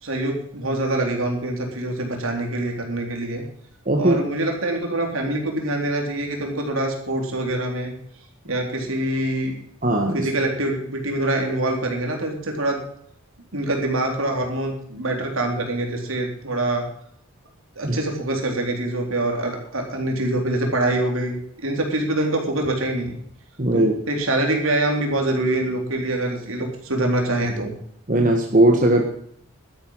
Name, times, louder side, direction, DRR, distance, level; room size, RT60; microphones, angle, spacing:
voice 1, 0.0-3.5 4.0-7.9 8.5-9.5 10.1-12.8 13.5-16.9 17.8-23.2 23.7-27.8, right 1 dB, 70° right, 2 dB, 3.7 m, -25 dB
voice 2, 3.8-4.2 9.8-10.3 17.8-18.0 23.6-23.9 28.1-29.0, right 1 dB, 40° right, 2 dB, 1.6 m, -18 dB
12.5 x 11.0 x 5.6 m, 0.65 s
head